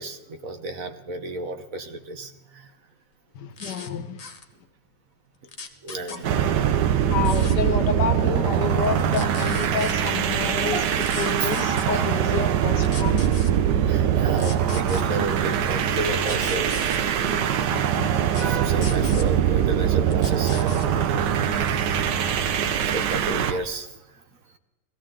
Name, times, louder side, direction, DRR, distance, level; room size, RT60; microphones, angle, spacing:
voice 1, 0.0-2.6 5.8-6.4 10.7-10.9 11.4-11.5 11.9-12.0 13.2-13.3 13.7-16.7 18.3-20.9 22.8-23.9, right 2 dB, 55° right, 8 dB, 1.1 m, -32 dB
voice 2, 3.3-4.2 6.1-6.5 7.0-10.8 11.2-13.3 17.7-18.5, left 7 dB, 70° left, 10 dB, 1.5 m, -30 dB
sound 1, 3.6-3.9 4.2-4.4 5.5-6.2 7.3-7.6 8.8-9.9 11.0-11.9 12.8-13.5 14.3-15.1 16.2-17.0 18.3-18.5 18.8-19.3 20.1-20.9 21.6-21.8, left 4 dB, 30° left, 0.8 m, -38 dB
sound 2, 6.2-23.6, right 9 dB, 75° right, 1.4 m, -22 dB
17.0 x 15.0 x 3.8 m, 1.1 s
omnidirectional pair, 1.9 m